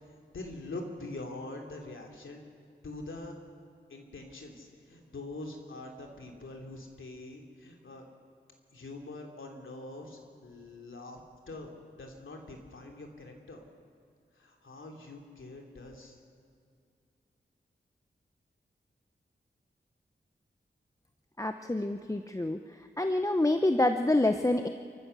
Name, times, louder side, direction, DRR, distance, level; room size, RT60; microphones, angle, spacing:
voice 1, 0.3-2.4 2.8-3.3 3.9-8.1 8.7-11.2 11.5-13.6 14.3-16.2, left 2 dB, 85° left, 2 dB, 3.0 m, -44 dB
voice 2, 21.4-22.6 23.0-24.7, left 2 dB, 15° left, 7 dB, 0.8 m, -27 dB
28.0 x 15.0 x 6.9 m, 2.4 s
wide cardioid pair, 80°, 20 cm